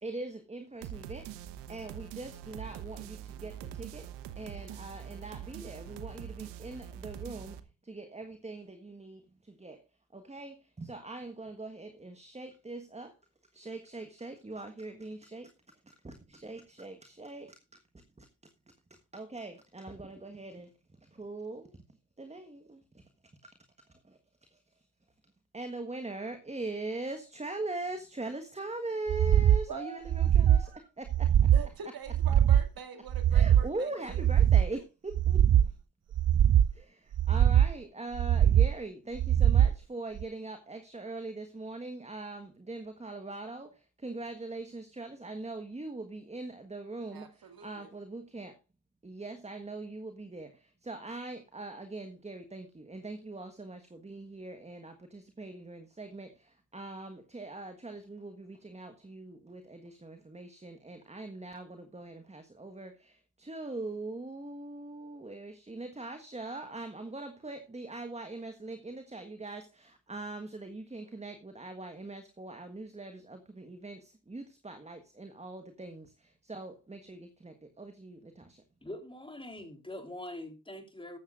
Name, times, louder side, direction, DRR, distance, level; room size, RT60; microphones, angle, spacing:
voice 1, 0.0-9.8 10.1-13.2 13.5-18.3 18.9-21.8 22.2-23.0 23.4-24.8 25.5-31.7 33.3-35.7 36.7-48.6 49.0-78.6, right 2 dB, 15° right, 1.5 m, -42 dB
sound 1, 0.8-7.6, right 10 dB, 85° right, 1.1 m, -44 dB
sound 2, 29.1-29.6 30.1-30.7 31.1-31.7 32.1-32.7 33.1-33.7 34.1-34.7 35.1-35.7 36.1-36.7 37.1-37.7 38.1-38.7 39.2-39.7 40.2-40.3, right 10 dB, 40° right, 0.5 m, -22 dB
voice 2, 29.7-30.9 31.5-34.2 47.1-47.9, right 6 dB, 60° right, 2.2 m, -45 dB
voice 3, 78.8-81.2, left 1 dB, 10° left, 3.4 m, -43 dB
14.0 x 12.0 x 2.5 m
supercardioid pair, 65°, 41 cm